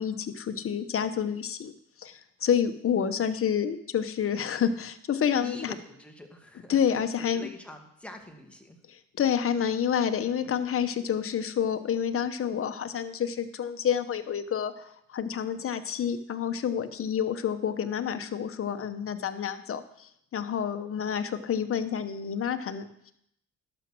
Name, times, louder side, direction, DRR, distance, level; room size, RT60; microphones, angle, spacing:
voice 1, 0.0-1.7 2.0-5.7 6.7-7.5 8.9-23.1, left 8 dB, 45° left, 9 dB, 0.9 m, -29 dB
voice 2, 5.4-8.8, left 2 dB, 5° left, 3 dB, 1.7 m, -45 dB
11.5 x 6.2 x 6.1 m, 0.74 s
cardioid pair, 90°, 30 cm